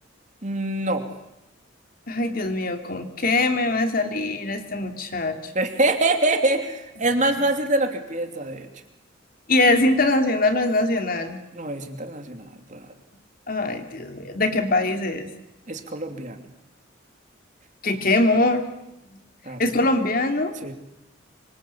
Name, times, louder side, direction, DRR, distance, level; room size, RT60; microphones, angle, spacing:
voice 1, 0.4-1.0 5.5-8.7 11.5-12.9 15.7-16.4 19.5-19.6 20.6-20.7, right 2 dB, 40° right, 6 dB, 2.7 m, -25 dB
voice 2, 2.1-5.5 9.5-11.4 13.5-15.3 17.8-18.7 19.6-20.5, left 2 dB, 45° left, 6 dB, 2.8 m, -22 dB
26.0 x 24.5 x 8.5 m, 0.89 s
head